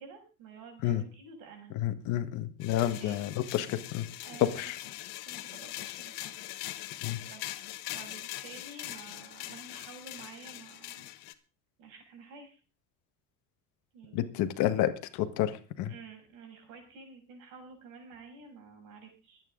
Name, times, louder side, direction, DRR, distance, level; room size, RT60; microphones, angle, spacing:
voice 1, 0.0-1.8 2.8-3.2 4.2-4.7 5.2-6.3 7.2-7.6 7.9-11.0 11.8-12.6 13.9-14.3 15.9-19.4, right 4 dB, 70° right, 3 dB, 6.3 m, -50 dB
voice 2, 1.7-4.1 4.4-4.8 7.0-7.2 14.1-15.9, left 12 dB, 60° left, 10 dB, 1.5 m, -30 dB
sound 1, 2.6-11.3, left 16 dB, 85° left, 1.4 m, -42 dB
24.0 x 9.2 x 3.8 m, 0.34 s
cardioid pair, 175°, 34 cm